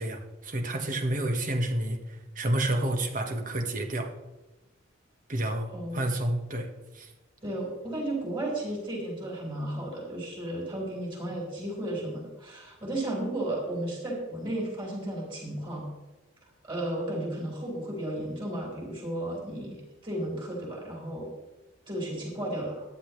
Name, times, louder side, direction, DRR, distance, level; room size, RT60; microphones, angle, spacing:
voice 1, 0.0-4.1 5.3-6.7 6.9-7.1, right 1 dB, 40° right, 5 dB, 1.4 m, -30 dB
voice 2, 7.4-15.9 16.6-21.3 21.9-22.8, right 1 dB, 25° right, -3 dB, 4.9 m, -34 dB
14.5 x 10.5 x 3.3 m, 1.1 s
head